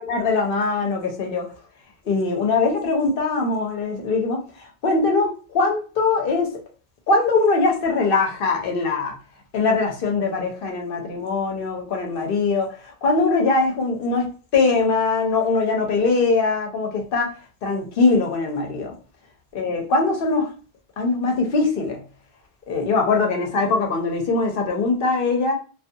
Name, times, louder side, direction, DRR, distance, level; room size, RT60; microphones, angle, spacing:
voice 1, 0.1-1.5 2.1-4.4 4.8-6.5 7.1-9.1 9.5-12.7 13.0-17.3 17.6-18.9 19.5-20.5 21.0-22.0 22.7-25.5, left 3 dB, 65° left, 2 dB, 0.8 m, -21 dB
2.5 x 2.3 x 2.6 m, 0.37 s
omnidirectional pair, 1.0 m